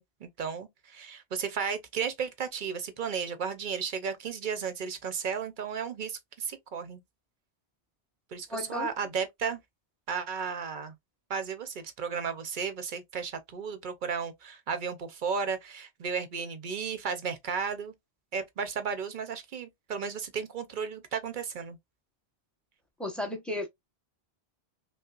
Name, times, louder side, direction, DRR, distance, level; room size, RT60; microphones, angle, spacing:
voice 1, 0.0-7.0 8.3-9.6 10.1-10.9 11.3-17.9 18.3-21.8, right 6 dB, 55° right, 0.8 m, -34 dB
voice 2, 8.5-8.9 23.0-23.7, left 1 dB, ahead, 0.7 m, -34 dB
5.4 x 2.0 x 2.3 m
omnidirectional pair, 1.1 m